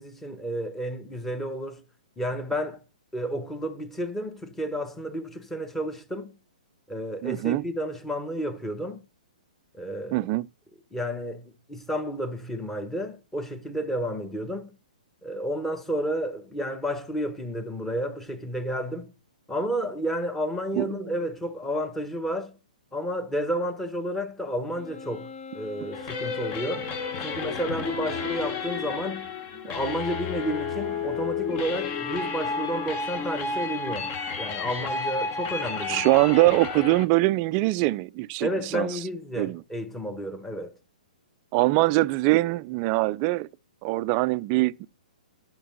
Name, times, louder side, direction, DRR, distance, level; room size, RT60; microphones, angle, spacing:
voice 1, 0.0-1.8 2.2-2.8 3.1-6.4 6.9-9.0 9.7-10.3 10.9-14.7 15.2-19.1 19.5-22.6 22.9-26.9 27.2-29.3 29.6-36.1 38.4-40.8, equal, 5° left, 1.2 m, -31 dB
voice 2, 7.2-7.6 10.1-10.5 20.8-20.9 35.9-38.9 39.4-39.6 41.5-43.5 43.8-44.9, right 20 dB, 35° right, 0.4 m, -23 dB
Wind instrument woodwind instrument, 24.7-29.3, left 4 dB, 50° left, 1.7 m, -42 dB
sound 1, 25.9-37.0, left 4 dB, 30° left, 1.2 m, -31 dB
11.0 x 5.2 x 5.5 m
hypercardioid pair, 130°, 5 cm